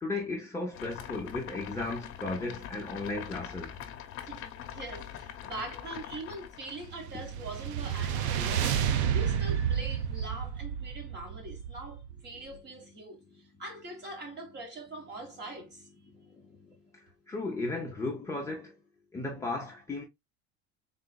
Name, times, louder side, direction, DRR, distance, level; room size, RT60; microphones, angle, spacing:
voice 1, 0.0-3.8 7.1-7.2 8.5-8.6 9.0-9.1 16.1-16.5 17.3-18.7 19.1-20.0, left 2 dB, 10° left, 0.5 m, -35 dB
sound 1, 0.7-6.9, left 10 dB, 45° left, 0.8 m, -43 dB
voice 2, 4.2-15.9, right 2 dB, 35° right, 1.6 m, -43 dB
sound 2, 6.8-12.3, right 9 dB, 90° right, 0.7 m, -31 dB
3.9 x 3.9 x 2.2 m
cardioid pair, 150°, 32 cm